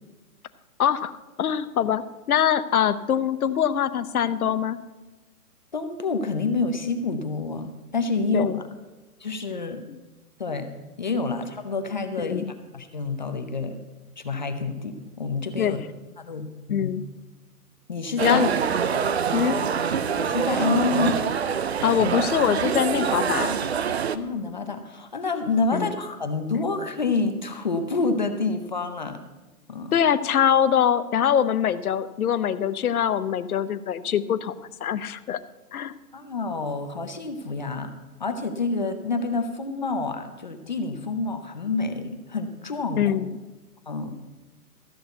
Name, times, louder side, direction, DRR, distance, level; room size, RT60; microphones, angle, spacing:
voice 1, 0.8-1.1 1.4-2.0 2.3-4.8 8.3-8.6 12.2-12.5 15.6-15.7 16.7-17.0 18.2-18.5 19.3-19.6 21.8-23.5 25.7-25.9 29.9-34.5 34.8-35.4 35.7-35.9 43.0-43.4, left 9 dB, 65° left, 13 dB, 0.8 m, -23 dB
voice 2, 5.7-8.6 9.2-9.8 10.4-13.8 14.2-15.8 16.2-16.9 17.9-18.5 20.2-21.2 24.1-29.2 29.7-29.9 36.1-37.9 38.2-43.2 43.9-44.1, left 3 dB, 30° left, 7 dB, 0.6 m, -28 dB
sound 1, 18.2-24.2, right 7 dB, 45° right, 0.5 m, -25 dB
14.0 x 6.2 x 7.9 m, 1.2 s
hypercardioid pair, 160°, 46 cm